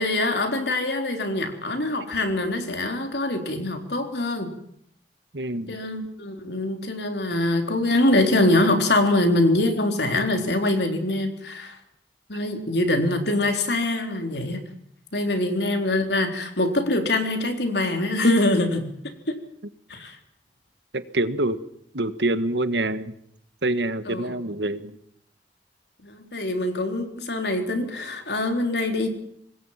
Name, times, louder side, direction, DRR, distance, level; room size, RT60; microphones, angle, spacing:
voice 1, 0.0-4.6 5.7-11.8 12.3-14.6 15.1-18.9 19.3-19.4 19.9-20.2 24.1-24.3 26.0-29.1, left 1 dB, 70° left, 4 dB, 3.9 m, -24 dB
voice 2, 5.3-5.8 20.9-21.6 21.9-23.1 23.6-25.0, right 2 dB, 80° right, 11 dB, 1.6 m, -26 dB
26.0 x 20.5 x 5.8 m, 0.72 s
head